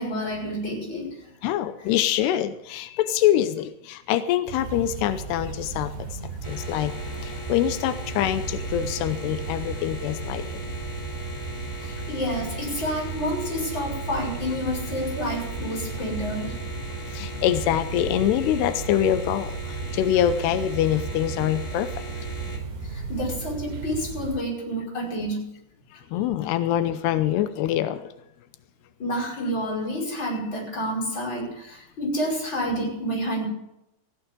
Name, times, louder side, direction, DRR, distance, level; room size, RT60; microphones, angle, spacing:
voice 1, 0.0-1.3 1.8-1.9 11.8-16.6 22.8-25.4 29.0-33.5, equal, 25° left, -2 dB, 6.1 m, -29 dB
voice 2, 1.4-5.9 6.5-6.9 7.2-10.6 17.1-19.5 19.9-21.9 26.1-28.0, left 11 dB, 90° left, 11 dB, 2.9 m, -24 dB
sound 1, 4.5-24.4, right 5 dB, 80° right, 4.8 m, -35 dB
sound 2, 6.4-22.6, left 1 dB, 10° left, 2.7 m, -39 dB
20.0 x 15.0 x 3.8 m, 0.83 s
omnidirectional pair, 4.6 m